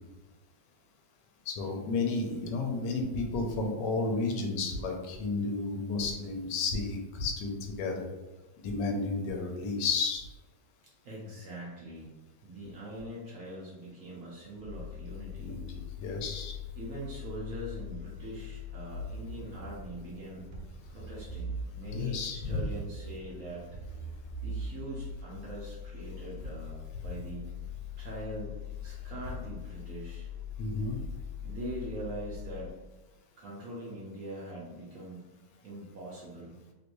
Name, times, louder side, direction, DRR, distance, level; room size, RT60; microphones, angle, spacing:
voice 1, 1.5-7.5 7.8-8.1 8.6-10.3 15.4-16.5 21.9-22.7 30.6-31.0, left 3 dB, 75° left, 2 dB, 1.2 m, -32 dB
voice 2, 11.0-12.1 12.4-15.6 16.8-20.4 20.9-23.8 24.4-27.5 28.0-30.3 31.4-32.7 33.4-35.3 35.6-36.5, right 1 dB, 60° right, -5 dB, 0.9 m, -42 dB
sound 1, 14.6-32.7, left 4 dB, 90° right, 1.3 m, -42 dB
3.1 x 3.0 x 2.5 m, 1.1 s
omnidirectional pair, 2.0 m